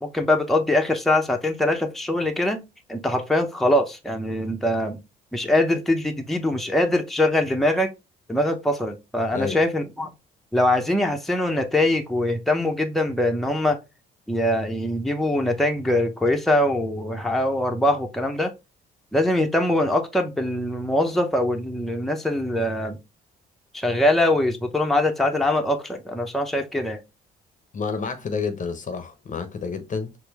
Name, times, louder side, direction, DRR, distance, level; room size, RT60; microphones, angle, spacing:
voice 1, 0.0-2.6 2.9-5.0 5.3-7.9 8.3-10.1 10.5-13.8 14.3-18.5 19.1-23.0 23.7-27.0, left 1 dB, ahead, 0.7 m, -23 dB
voice 2, 27.7-30.2, left 5 dB, 40° left, 0.7 m, -29 dB
4.3 x 2.1 x 3.3 m
supercardioid pair, 65°, 20 cm